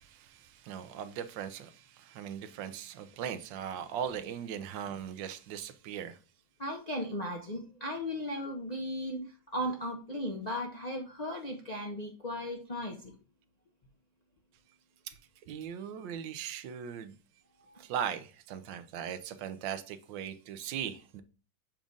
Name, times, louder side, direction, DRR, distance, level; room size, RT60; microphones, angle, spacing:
voice 1, 0.0-6.2 15.1-15.2 15.5-17.1 17.8-21.2, right 8 dB, 85° right, 1.3 m, -39 dB
voice 2, 6.6-13.1 17.7-17.8, equal, 45° left, 0.5 m, -36 dB
7.4 x 2.5 x 5.2 m
omnidirectional pair, 2.0 m